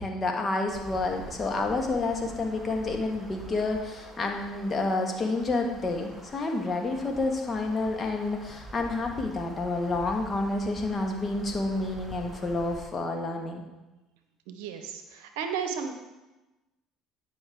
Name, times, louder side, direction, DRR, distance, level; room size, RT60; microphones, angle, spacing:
voice 1, 0.0-13.6, left 2 dB, 35° left, 3 dB, 1.5 m, -29 dB
sound 1, 0.7-12.8, right 1 dB, ahead, 1.9 m, -46 dB
voice 2, 14.5-16.0, right 6 dB, 75° right, 7 dB, 0.8 m, -34 dB
9.7 x 5.4 x 3.6 m, 1.1 s
hypercardioid pair, 65°, 0 cm